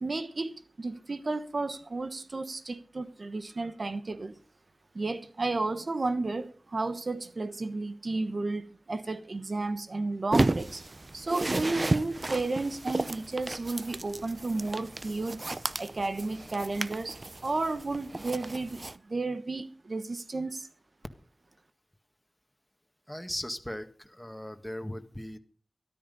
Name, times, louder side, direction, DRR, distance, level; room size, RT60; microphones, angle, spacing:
voice 1, 0.0-4.4 4.9-10.8 11.1-15.4 15.8-17.2 17.4-20.7, right 3 dB, 75° right, 1.2 m, -32 dB
sound 1, 10.3-19.0, right 2 dB, 50° right, 0.6 m, -33 dB
voice 2, 23.1-25.4, equal, 10° left, 1.7 m, -38 dB
13.5 x 13.0 x 5.4 m
wide cardioid pair, 60°, 0 cm